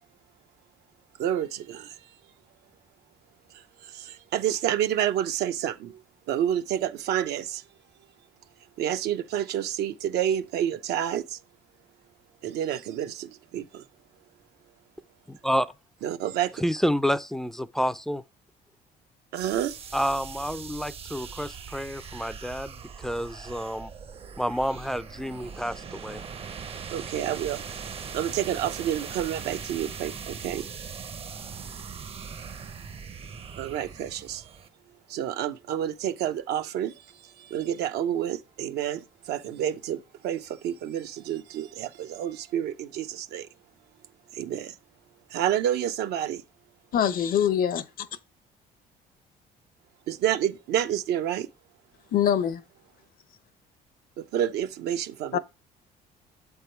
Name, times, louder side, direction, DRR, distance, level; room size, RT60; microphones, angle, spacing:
voice 1, 1.2-1.8 4.3-5.9 6.3-7.6 8.8-11.2 12.4-13.3 13.5-13.6 16.0-16.5 19.3-19.7 26.9-27.6 28.1-30.6 33.6-34.4 35.1-36.9 37.5-39.0 39.3-40.0 40.2-43.5 44.4-44.7 45.3-46.4 50.1-51.5 54.3-55.4, right 10 dB, 75° right, 0.8 m, -28 dB
voice 2, 15.3-15.7 16.6-18.2 19.9-23.9 24.4-26.2, equal, ahead, 0.4 m, -29 dB
sound 1, 19.4-34.7, right 6 dB, 35° right, 0.6 m, -40 dB
voice 3, 46.9-48.1 52.1-52.6 55.3-55.4, left 9 dB, 60° left, 0.7 m, -24 dB
7.7 x 3.6 x 4.5 m
cardioid pair, 110°, 17 cm